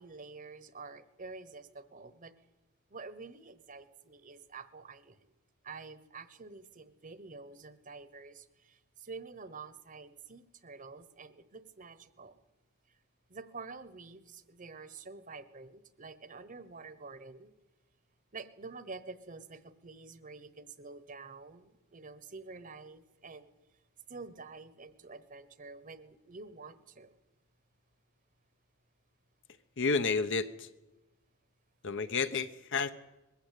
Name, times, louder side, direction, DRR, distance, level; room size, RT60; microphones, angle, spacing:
voice 1, 0.0-2.3 2.9-5.3 5.6-12.4 13.3-17.5 18.3-23.5 24.1-27.2, right 4 dB, 35° right, 14 dB, 1.1 m, -48 dB
voice 2, 29.8-30.7 31.8-32.9, left 4 dB, 55° left, 10 dB, 1.0 m, -31 dB
21.0 x 15.5 x 8.3 m, 1.1 s
head